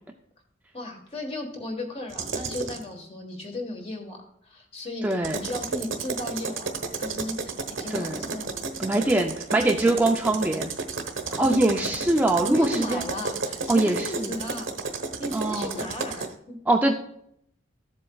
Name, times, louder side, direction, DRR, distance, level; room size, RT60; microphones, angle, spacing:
voice 1, 0.7-8.6 8.9-9.2 11.3-11.6 12.4-16.5, left 1 dB, 30° left, 2 dB, 1.4 m, -35 dB
sound 1, 2.1-2.8 5.1-16.3, right 4 dB, 85° right, 1.0 m, -32 dB
voice 2, 5.0-5.4 7.9-8.4 8.8-10.7 11.4-13.0 13.7-14.3 15.3-15.8 16.7-16.9, right 2 dB, 10° right, 1 dB, 0.4 m, -23 dB
13.5 x 7.6 x 2.3 m, 0.71 s
head